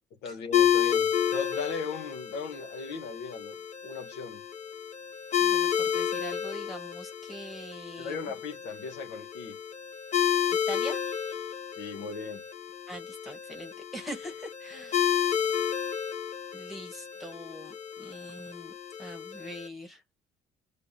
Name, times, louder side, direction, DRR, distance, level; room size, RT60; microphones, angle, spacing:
voice 1, 0.2-4.4 8.0-9.6 11.7-12.4, left 5 dB, 85° left, 1.2 m, -38 dB
sound 1, 0.5-19.7, left 9 dB, 45° left, 1.1 m, -31 dB
voice 2, 5.4-8.3 10.4-11.5 12.9-15.2 16.5-20.0, equal, ahead, 1.3 m, -43 dB
6.8 x 2.5 x 2.7 m
cardioid pair, 110°, 17 cm